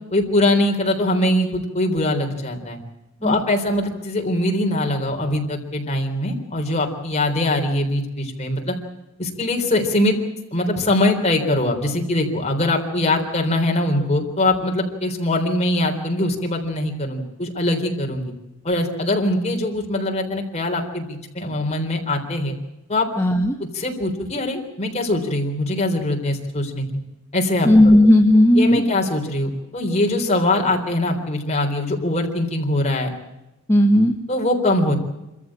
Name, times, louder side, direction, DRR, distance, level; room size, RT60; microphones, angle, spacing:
voice 1, 0.1-2.8 3.2-8.8 9.2-10.2 10.5-18.3 18.6-22.5 22.9-23.1 23.6-26.9 27.3-27.7 28.6-33.1 34.3-34.9, left 1 dB, 30° left, 2 dB, 3.7 m, -22 dB
voice 2, 23.2-23.6 27.6-28.8 33.7-34.1, left 1 dB, 15° left, 2 dB, 1.2 m, -14 dB
26.0 x 14.5 x 8.7 m, 0.96 s
head